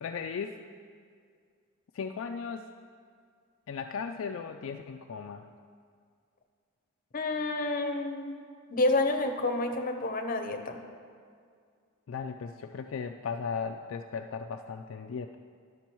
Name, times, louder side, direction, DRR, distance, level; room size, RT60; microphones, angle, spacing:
voice 1, 0.0-0.6 1.9-2.7 3.7-5.5 12.1-15.4, left 6 dB, 70° left, 5 dB, 0.3 m, -36 dB
voice 2, 7.1-8.3 8.7-10.8, left 2 dB, 40° left, 5 dB, 0.7 m, -29 dB
11.5 x 6.2 x 4.5 m, 2.1 s
head